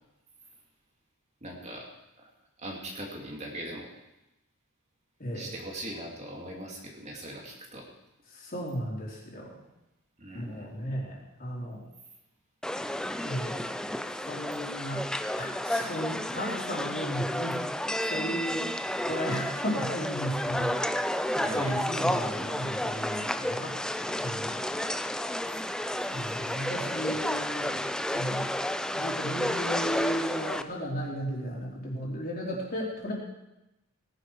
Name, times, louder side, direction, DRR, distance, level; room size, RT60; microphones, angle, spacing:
voice 1, 1.4-1.9 2.2-2.3 2.6-3.9 5.3-7.9 10.2-10.7 21.4-21.8, right 1 dB, 30° right, -1 dB, 2.6 m, -40 dB
voice 2, 5.2-5.5 8.3-9.6 10.3-11.8 13.2-13.7 14.2-15.0 15.4-17.6 18.0-23.8 24.2-24.6 26.1-27.7 28.1-28.5 28.9-33.1, equal, 40° left, -3 dB, 3.8 m, -35 dB
sound 1, 12.6-30.6, left 1 dB, 5° left, 0.4 m, -31 dB
19.0 x 10.5 x 4.8 m, 0.93 s
head